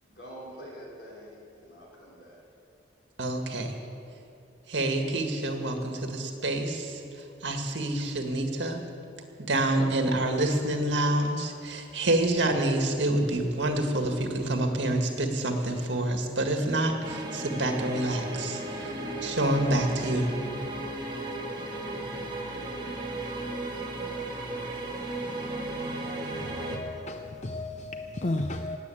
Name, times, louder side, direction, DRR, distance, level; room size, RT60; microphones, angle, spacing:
voice 1, 0.0-2.4, equal, 80° left, 4.6 m, -46 dB
voice 2, 3.2-3.7 4.7-7.0 7.4-8.8 9.4-18.9 19.2-20.3, right 1 dB, 80° right, 1.8 m, -27 dB
sound 1, 17.0-26.8, right 2 dB, 25° right, 1.9 m, -35 dB
voice 3, 26.7-28.8, left 2 dB, 40° left, 0.5 m, -33 dB
18.0 x 8.2 x 8.5 m
head